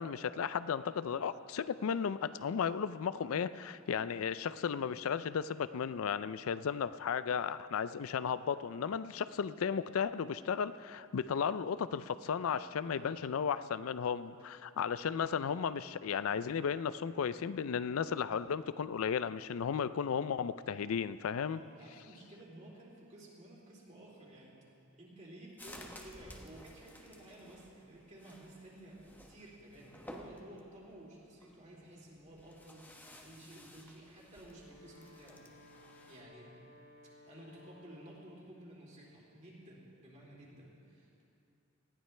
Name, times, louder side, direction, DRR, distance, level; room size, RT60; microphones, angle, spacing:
voice 1, 0.0-21.6, left 7 dB, 90° left, 15 dB, 0.4 m, -34 dB
voice 2, 12.8-13.4 21.4-24.5 25.0-36.6 37.3-41.2, right 1 dB, 35° right, -4 dB, 3.2 m, -54 dB
sound 1, 25.6-36.2, left 1 dB, 10° left, 1.1 m, -55 dB
Wind instrument woodwind instrument, 34.3-38.4, left 2 dB, 60° left, 2.4 m, -59 dB
19.5 x 14.5 x 3.3 m, 2.6 s
head